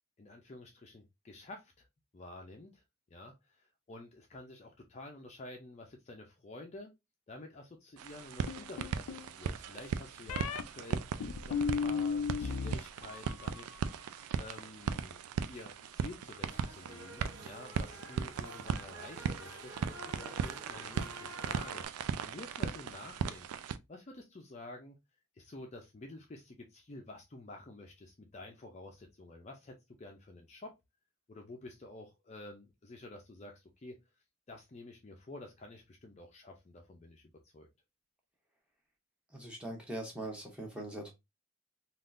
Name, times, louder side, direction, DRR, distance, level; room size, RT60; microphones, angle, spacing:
voice 1, 0.2-1.9 2.1-2.8 3.1-6.9 7.3-13.7 14.4-23.5 23.9-25.0 25.4-30.7 31.3-34.0 34.5-37.7, left 2 dB, 30° left, 0.4 m, -50 dB
sound 1, 8.0-23.8, right 7 dB, 90° right, 0.3 m, -38 dB
sound 2, 8.5-9.3 10.3-10.6 11.2-12.7 13.0-13.6, left 5 dB, 90° left, 0.4 m, -35 dB
sound 3, 16.5-21.9, right 1 dB, 55° right, 1.1 m, -50 dB
voice 2, 39.3-41.1, right 1 dB, 5° right, 0.8 m, -41 dB
3.5 x 2.4 x 2.4 m
head